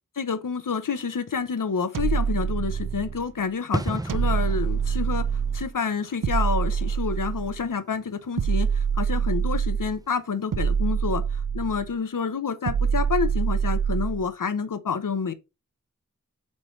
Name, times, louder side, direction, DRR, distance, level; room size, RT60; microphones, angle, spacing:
voice 1, 0.2-5.3 5.5-15.3, left 5 dB, 70° left, 0.7 m, -28 dB
sound 1, 1.9-3.3 4.1-5.7 6.2-7.6 8.4-10.0 10.5-11.9 12.7-14.3, right 7 dB, 70° right, 0.6 m, -25 dB
sound 2, 3.7-10.2 10.5-10.7, right 2 dB, 10° right, 0.4 m, -37 dB
7.4 x 3.1 x 4.4 m
wide cardioid pair, 50°, 33 cm